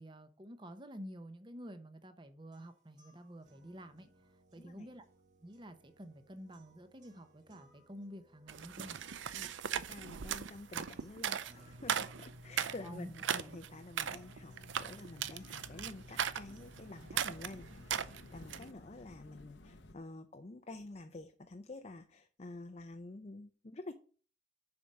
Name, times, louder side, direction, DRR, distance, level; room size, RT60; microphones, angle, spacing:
voice 1, 0.0-4.1 4.5-5.0 5.4-9.0 12.8-13.1, equal, 25° right, 0.9 m, -50 dB
sound 1, 2.5-18.5, left 1 dB, 40° right, 2.3 m, -60 dB
voice 2, 4.6-4.9 9.3-14.5 14.8-23.9, left 2 dB, 35° left, 0.5 m, -49 dB
sound 2, 8.5-18.7, right 8 dB, 80° right, 0.5 m, -39 dB
sound 3, 14.0-20.0, left 2 dB, 70° left, 0.8 m, -56 dB
7.0 x 4.9 x 6.6 m
head